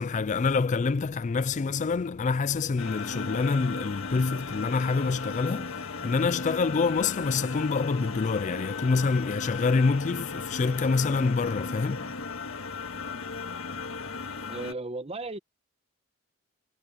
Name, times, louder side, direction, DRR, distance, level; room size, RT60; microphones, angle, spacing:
voice 1, 0.0-14.5, left 4 dB, 35° left, 0.3 m, -27 dB
sound 1, 2.8-14.7, left 4 dB, 70° left, 1.7 m, -36 dB
voice 2, 14.5-15.4, right 2 dB, 25° right, 1.0 m, -35 dB
head